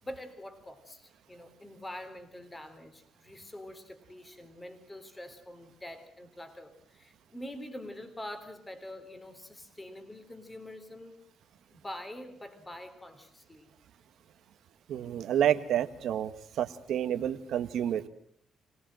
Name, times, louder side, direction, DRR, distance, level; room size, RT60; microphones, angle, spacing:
voice 1, 0.0-11.2 11.7-13.7, left 1 dB, 15° left, 9 dB, 3.6 m, -45 dB
voice 2, 14.9-16.3 16.6-18.1, right 10 dB, 75° right, 10 dB, 1.5 m, -29 dB
25.5 x 18.5 x 7.7 m, 0.63 s
cardioid pair, 90°, 0 cm